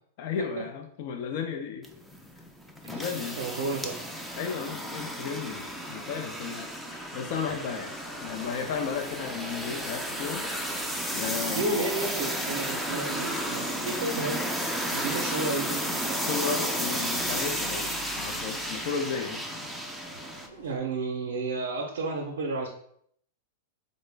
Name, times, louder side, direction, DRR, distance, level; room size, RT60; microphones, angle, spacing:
voice 1, 0.2-1.9 2.9-3.4 4.4-7.9 8.2-10.8 11.1-11.8 16.2-19.4, left 6 dB, 55° left, 4 dB, 0.5 m, -34 dB
sound 1, 1.8-20.5, equal, ahead, 0.4 m, -33 dB
voice 2, 3.4-4.0 11.5-16.1 20.5-22.7, right 2 dB, 80° right, 1 dB, 0.5 m, -32 dB
sound 2, 5.5-20.8, right 2 dB, 85° left, 0.8 m, -49 dB
3.8 x 2.1 x 3.2 m, 0.67 s
hypercardioid pair, 135°, 0 cm